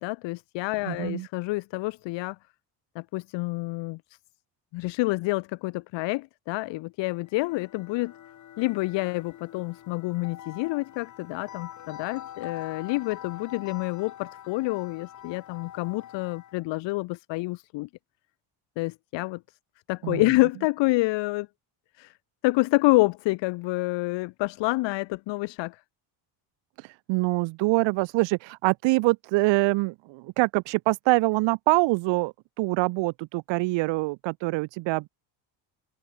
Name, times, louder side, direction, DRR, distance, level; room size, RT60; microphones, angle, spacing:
voice 1, 0.0-2.4 2.9-4.2 4.7-8.1 8.6-17.9 18.8-19.4 19.9-21.5 22.0-22.1 22.4-25.8, left 22 dB, 65° left, 0.9 m, -28 dB
voice 2, 0.8-1.3 20.0-20.2 26.8-35.1, right 23 dB, 70° right, 0.8 m, -25 dB
sound 1, 7.2-16.7, left 11 dB, 40° left, 2.0 m, -44 dB
cardioid pair, 165°, 47 cm